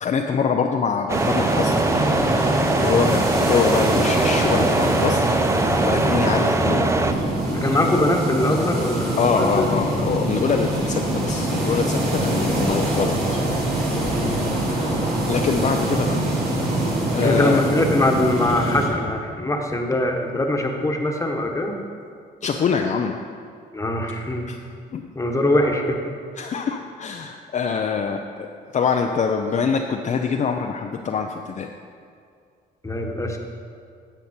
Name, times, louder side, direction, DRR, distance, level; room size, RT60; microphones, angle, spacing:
voice 1, 0.0-1.8 2.3-2.5 2.8-5.3 5.6-7.4 9.2-13.4 14.8-15.0 15.3-16.2 17.1-17.6 22.4-23.2 24.5-24.6 24.9-25.1 26.4-28.2 28.7-31.7, left 6 dB, 45° left, 3 dB, 0.6 m, -24 dB
sound 1, 1.1-7.1, right 2 dB, 15° right, 0.5 m, -22 dB
sound 2, 1.1-18.9, right 1 dB, 60° right, 2.3 m, -24 dB
voice 2, 7.5-9.6 14.1-14.5 17.2-21.7 23.7-24.5 25.1-26.0 32.8-33.4, left 1 dB, 15° left, 2 dB, 1.3 m, -22 dB
10.5 x 7.0 x 4.4 m, 2.2 s
supercardioid pair, 75°, 18 cm